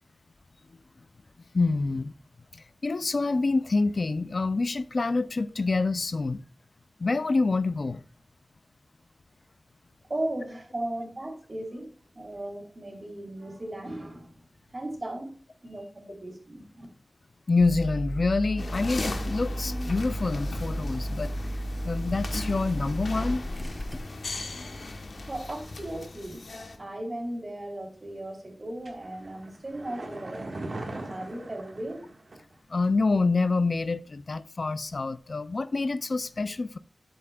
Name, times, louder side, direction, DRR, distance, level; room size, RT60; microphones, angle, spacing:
voice 1, 1.5-2.1 2.8-6.4 7.0-8.0 17.5-21.3 21.8-23.4 32.7-36.8, left 3 dB, 65° left, 0.4 m, -26 dB
voice 2, 10.1-11.9 12.1-14.4 14.7-16.9 25.1-26.4 26.8-30.5 31.1-32.1, right 1 dB, 45° right, 3.0 m, -36 dB
sound 1, 17.6-24.0, right 1 dB, 10° left, 0.7 m, -33 dB
sound 2, 18.6-26.8, left 2 dB, 90° left, 1.0 m, -37 dB
sound 3, 28.8-32.6 32.8-32.9, right 2 dB, 80° right, 1.5 m, -40 dB
11.5 x 7.6 x 2.3 m
wide cardioid pair, 75°, 0 cm